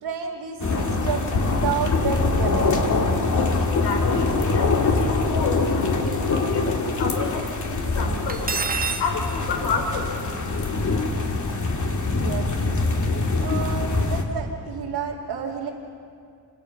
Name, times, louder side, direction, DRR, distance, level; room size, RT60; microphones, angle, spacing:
voice 1, 0.0-2.9 12.1-12.5 13.4-15.7, right 6 dB, 70° right, -4 dB, 2.6 m, -30 dB
sound 1, 0.6-14.2, left 3 dB, 45° left, 2.6 m, -24 dB
voice 2, 3.6-8.5 9.0-10.1, left 4 dB, 75° left, 2 dB, 5.0 m, -30 dB
Cutlery silverware, 8.3-9.1, right 5 dB, 20° right, 1.0 m, -26 dB
28.0 x 24.5 x 5.9 m, 2.4 s
cardioid pair, 115°, 42 cm